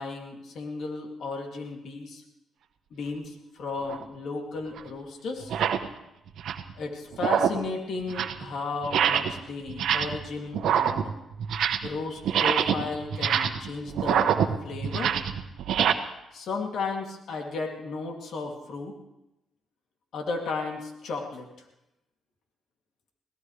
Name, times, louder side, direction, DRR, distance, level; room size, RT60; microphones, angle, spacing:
voice 1, 0.0-2.2 2.9-5.5 6.7-11.1 11.8-15.1 16.3-19.0 20.1-21.5, left 4 dB, 70° left, 1 dB, 2.7 m, -34 dB
sound 1, 3.8-4.0 4.8-4.9 5.4-5.9 6.3-6.7 7.1-7.7 8.0-8.4 8.8-9.4 9.7-10.3 10.5-12.0 12.2-15.9, right 8 dB, 75° right, 1.1 m, -25 dB
22.0 x 17.5 x 3.3 m, 0.90 s
cardioid pair, 85°, 0 cm